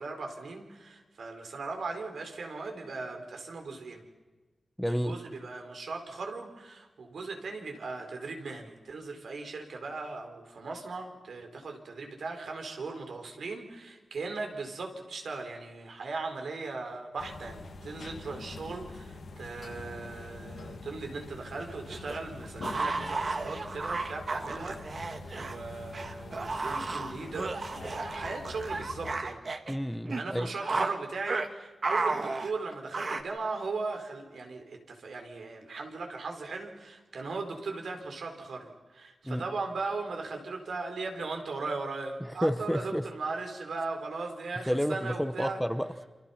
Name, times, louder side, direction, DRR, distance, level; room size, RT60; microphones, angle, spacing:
voice 1, 0.0-4.1 4.9-29.4 30.1-45.6, right 3 dB, 85° right, 4 dB, 4.5 m, -38 dB
voice 2, 4.8-5.1 29.7-30.5 39.2-39.5 42.2-43.0 44.7-46.0, equal, ahead, 9 dB, 1.0 m, -30 dB
sound 1, 17.2-29.2, left 3 dB, 75° left, 2.5 m, -45 dB
sound 2, 21.6-25.6 25.9-29.8 30.1-30.2 30.6-31.0 31.3-31.5 31.8-33.2, right 3 dB, 45° right, 1.7 m, -33 dB
28.5 x 27.5 x 5.8 m, 1.2 s
wide cardioid pair, 140°, 0 cm